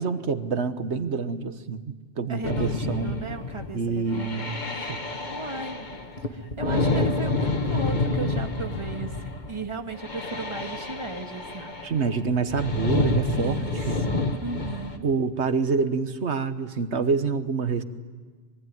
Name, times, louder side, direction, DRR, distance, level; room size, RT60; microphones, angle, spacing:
voice 1, 0.0-3.2 3.7-4.6 4.9-5.0 11.8-13.6 13.9-14.0 15.0-17.8, right 5 dB, 70° right, 10 dB, 1.5 m, -27 dB
voice 2, 2.3-4.5 4.8-5.8 6.2-11.7 13.4-15.1, right 3 dB, 25° right, 4 dB, 1.7 m, -36 dB
sound 1, 2.4-15.0, left 2 dB, 40° left, 1.6 m, -28 dB
24.5 x 22.0 x 9.6 m, 1.5 s
omnidirectional pair, 1.2 m